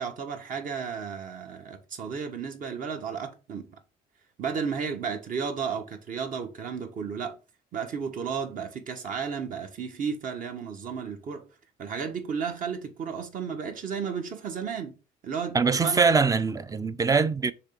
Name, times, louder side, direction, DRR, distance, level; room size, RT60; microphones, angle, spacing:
voice 1, 0.0-3.8 4.4-7.4 7.7-11.5 11.8-14.9 15.2-16.0, right 6 dB, 50° right, 1.6 m, -33 dB
voice 2, 15.5-17.5, right 4 dB, 20° right, 0.6 m, -23 dB
6.5 x 3.4 x 6.0 m
cardioid pair, 110°, 17 cm